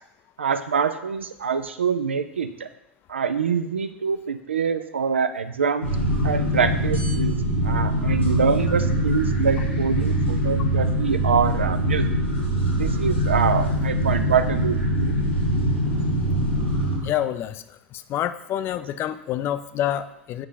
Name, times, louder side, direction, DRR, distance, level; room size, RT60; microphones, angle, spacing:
voice 1, 0.4-2.7 3.1-5.9 6.2-12.1 12.7-15.2, right 6 dB, 75° right, 11 dB, 0.4 m, -25 dB
sound 1, 5.8-17.0, equal, 90° left, 2.1 m, -23 dB
voice 2, 17.0-17.6 18.1-20.5, left 11 dB, 35° left, 12 dB, 0.4 m, -27 dB
7.7 x 5.1 x 3.9 m, 0.82 s
figure-of-eight pair, 80°, 6 cm